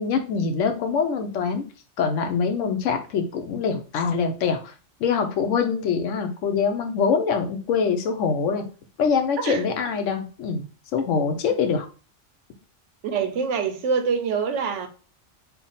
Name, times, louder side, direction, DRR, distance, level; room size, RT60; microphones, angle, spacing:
voice 1, 0.0-1.7 2.0-4.7 5.0-8.6 9.0-10.6 10.9-11.9, left 6 dB, 85° left, 1.0 m, -24 dB
voice 2, 13.0-14.9, right 6 dB, 75° right, 1.0 m, -25 dB
3.4 x 2.3 x 3.9 m
omnidirectional pair, 1.3 m